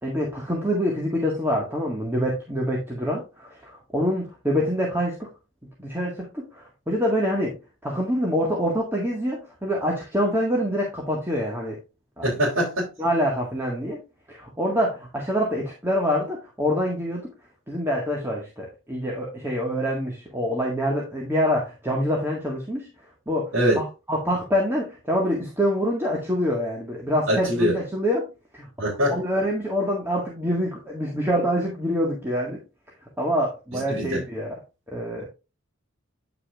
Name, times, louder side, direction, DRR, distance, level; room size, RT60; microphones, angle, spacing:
voice 1, 0.0-5.3 5.8-7.6 7.8-11.8 12.2-12.3 13.0-14.0 14.3-17.3 17.7-22.9 23.3-28.3 28.5-28.7 29.1-32.6 33.2-34.6 34.9-35.3, equal, 10° right, 1.8 m, -26 dB
voice 2, 12.2-12.9 23.5-23.8 27.3-27.7 28.8-29.2 33.7-34.2, equal, 90° right, 4.1 m, -23 dB
9.7 x 6.3 x 2.5 m
head